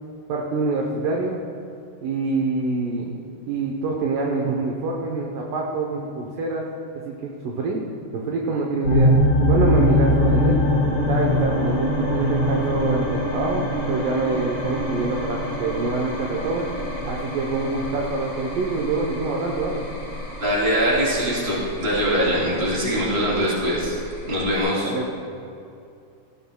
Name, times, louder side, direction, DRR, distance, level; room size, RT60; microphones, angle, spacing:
voice 1, 0.3-1.4 2.0-3.1 3.5-6.7 7.1-7.8 8.1-9.1 9.5-10.6 11.1-16.7 17.1-19.9 24.9-25.1, right 3 dB, 75° right, -1 dB, 2.1 m, -25 dB
sound 1, 8.8-24.6, left 1 dB, 25° left, 2.5 m, -24 dB
voice 2, 20.4-23.9 24.3-24.9, equal, 15° right, -6 dB, 2.7 m, -22 dB
18.0 x 15.0 x 2.3 m, 2.6 s
omnidirectional pair, 4.9 m